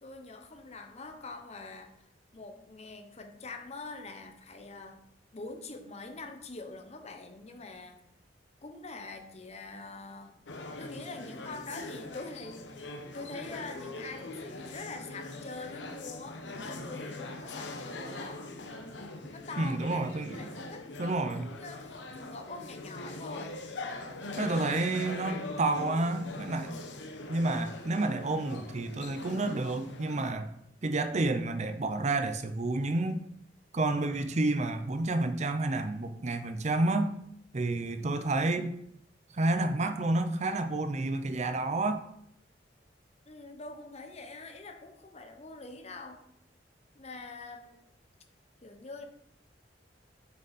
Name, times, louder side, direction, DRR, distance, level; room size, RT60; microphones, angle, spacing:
voice 1, 0.0-2.1 2.3-5.0 5.3-8.0 8.6-10.4 10.8-18.5 19.3-20.0 20.3-23.6 43.3-46.2 46.9-47.9 48.6-49.0, left 3 dB, 35° left, 6 dB, 1.0 m, -44 dB
sound 1, 10.5-30.3, left 2 dB, 90° left, 1.0 m, -42 dB
voice 2, 19.6-20.5 21.0-21.5 24.4-26.7 27.3-30.5 30.8-33.2 33.7-37.1 37.5-38.7 39.3-42.0, right 2 dB, 40° right, 10 dB, 0.6 m, -30 dB
7.2 x 6.4 x 4.2 m, 0.72 s
head